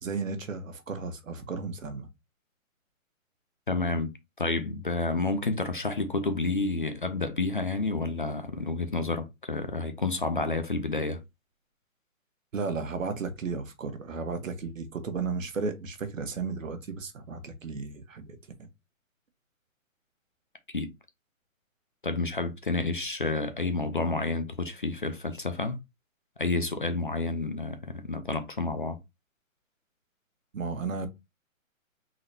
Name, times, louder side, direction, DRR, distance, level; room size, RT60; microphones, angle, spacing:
voice 1, 0.0-2.1 12.5-18.7 30.5-31.1, right 4 dB, 65° right, 1.1 m, -34 dB
voice 2, 3.7-4.1 4.4-11.2 20.7-20.9 22.0-25.8 26.4-29.0, left 3 dB, 40° left, 0.5 m, -30 dB
3.9 x 3.2 x 2.6 m
hypercardioid pair, 175°, 41 cm